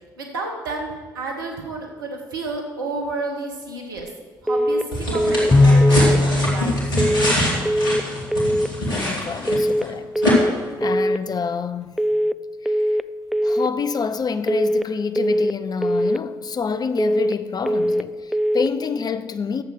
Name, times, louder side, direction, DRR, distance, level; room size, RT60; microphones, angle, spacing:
voice 1, 0.2-4.1 4.4-6.8, right 2 dB, 85° right, 1.5 m, -31 dB
sound 1, 4.5-4.9 5.1-5.5 5.8-6.2 7.0-7.4 7.6-8.0 8.3-8.7 9.5-9.9 10.1-10.5 10.8-11.2 12.0-12.4 12.6-13.0 13.3-13.7 14.5-14.9 15.2-15.5 15.8-16.2 17.0-17.4 17.7-18.1 18.3-18.7, equal, ahead, 0.3 m, -21 dB
sound 2, 4.9-9.9 10.2-10.3, equal, 80° left, 2.5 m, -24 dB
Bowed string instrument, 5.5-8.1, left 2 dB, 20° left, 1.0 m, -19 dB
voice 2, 8.9-10.2 10.8-12.0 12.6-12.8 13.4-19.6, left 5 dB, 35° left, 0.7 m, -27 dB
9.8 x 7.3 x 6.3 m
figure-of-eight pair, 45°, 11 cm